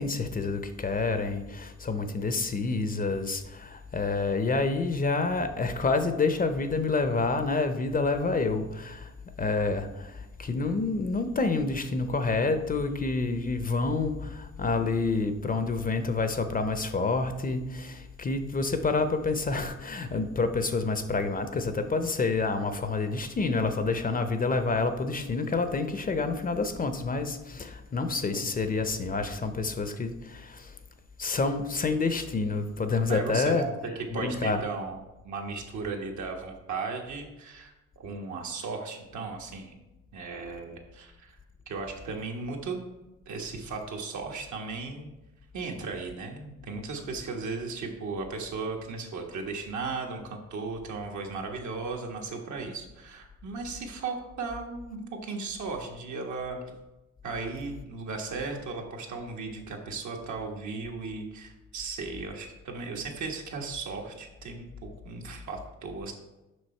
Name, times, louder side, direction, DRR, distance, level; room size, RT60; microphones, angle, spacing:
voice 1, 0.0-9.1 9.4-30.7 31.2-33.6 34.1-34.6, left 3 dB, 30° left, 9 dB, 0.6 m, -28 dB
voice 2, 33.1-35.0 35.2-39.7 40.1-41.4 41.7-42.8 43.3-45.1 45.5-56.7 57.2-66.1, right 4 dB, 70° right, 1 dB, 1.4 m, -36 dB
6.4 x 5.6 x 4.4 m, 1.0 s
cardioid pair, 90°, 30 cm